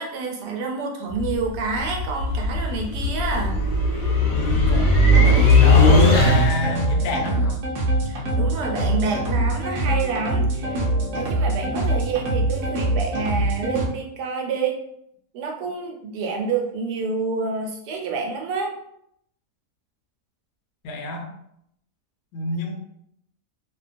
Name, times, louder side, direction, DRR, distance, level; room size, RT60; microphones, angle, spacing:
voice 1, 0.0-3.6 8.0-10.9 11.1-14.8 15.3-18.7, right 4 dB, 85° right, 1 dB, 1.2 m, -28 dB
sound 1, 1.1-6.8, left 2 dB, 60° left, 0.9 m, -18 dB
voice 2, 4.3-4.9 5.2-7.6 20.8-21.3 22.3-22.7, left 1 dB, 80° left, 2 dB, 1.1 m, -28 dB
sound 2, 5.1-13.9, right 1 dB, 65° right, 0.8 m, -24 dB
2.7 x 2.2 x 2.5 m, 0.74 s
omnidirectional pair, 1.7 m